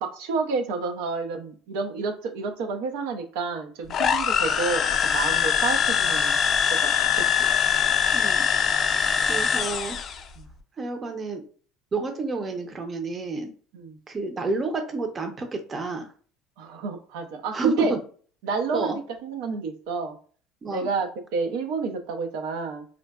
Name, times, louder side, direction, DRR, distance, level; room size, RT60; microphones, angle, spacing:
voice 1, 0.0-6.3 6.7-7.4 10.4-10.5 13.7-14.0 16.6-18.0 18.4-20.2 20.7-22.8, right 4 dB, 80° right, 5 dB, 0.5 m, -30 dB
sound 1, 3.9-10.2, left 7 dB, 45° left, 0.4 m, -23 dB
voice 2, 8.1-8.5 9.2-10.0 10.8-11.4 11.9-13.5 14.1-16.1 17.5-18.0 18.7-19.0 20.6-20.9, right 3 dB, 30° right, 5 dB, 0.6 m, -29 dB
3.7 x 2.2 x 2.3 m, 0.43 s
supercardioid pair, 110°, 0 cm